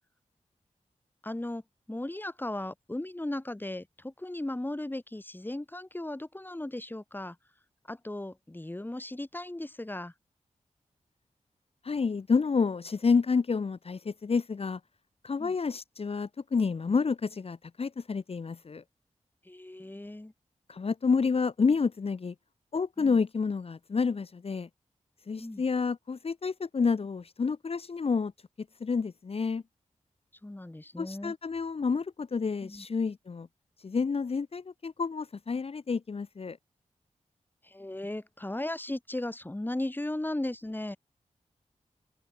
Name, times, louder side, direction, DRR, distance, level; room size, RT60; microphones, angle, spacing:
voice 1, 1.2-1.6 1.9-7.4 7.9-10.1 15.4-15.5 19.5-20.3 23.0-23.2 25.4-25.6 30.4-31.3 32.6-32.9 37.6-41.0, left 1 dB, 15° left, 2.0 m, -36 dB
voice 2, 11.8-14.8 15.2-18.8 20.7-22.3 22.7-24.7 25.3-28.3 28.8-29.6 31.0-33.5 33.8-36.6, left 5 dB, 50° left, 0.9 m, -29 dB
open air
cardioid pair, 65°, 13 cm